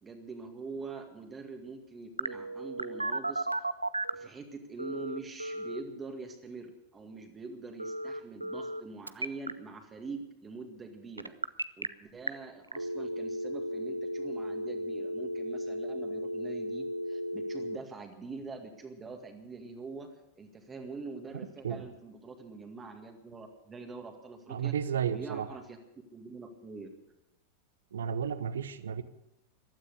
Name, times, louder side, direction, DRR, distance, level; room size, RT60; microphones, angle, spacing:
voice 1, 0.0-3.5 4.1-11.4 11.8-24.7 25.1-25.8 26.1-26.9, right 4 dB, 20° right, 4 dB, 1.9 m, -44 dB
Telephone, 2.2-4.3 4.8-5.8 7.8-8.8 9.1-9.5 11.2-11.9 12.3-12.4 12.7-17.8, right 1 dB, 85° right, 0.5 m, -35 dB
voice 2, 24.5-25.5 27.9-29.0, right 8 dB, 65° right, 14 dB, 0.9 m, -32 dB
15.5 x 12.5 x 6.6 m, 0.89 s
figure-of-eight pair, 90°, 0 cm